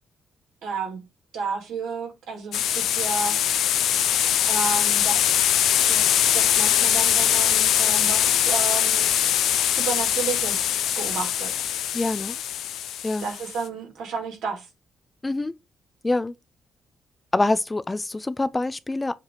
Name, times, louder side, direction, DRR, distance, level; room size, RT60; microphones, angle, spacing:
voice 1, 0.6-1.0 1.3-3.4 4.5-5.2 5.9-9.1 9.7-11.5 13.2-14.7, right 5 dB, 80° right, 2.0 m, -31 dB
sound 1, 2.5-13.6, left 10 dB, 80° left, 0.5 m, -22 dB
voice 2, 11.9-12.4 13.0-13.3 15.2-15.5 16.0-16.3 17.3-19.1, left 2 dB, 25° left, 0.4 m, -25 dB
7.3 x 2.7 x 4.8 m
supercardioid pair, 55°, 0 cm